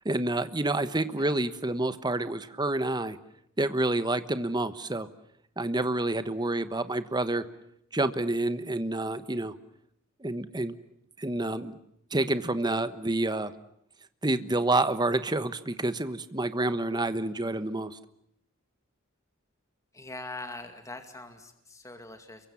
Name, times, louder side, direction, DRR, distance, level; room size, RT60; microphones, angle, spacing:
voice 1, 0.0-3.2 3.6-5.1 5.6-7.5 7.9-9.6 10.2-10.7 11.2-11.8 12.1-13.5 14.2-18.0, right 2 dB, 20° right, 12 dB, 1.2 m, -28 dB
voice 2, 19.9-22.5, left 2 dB, 15° left, 6 dB, 2.3 m, -42 dB
28.5 x 23.5 x 7.2 m, 0.74 s
head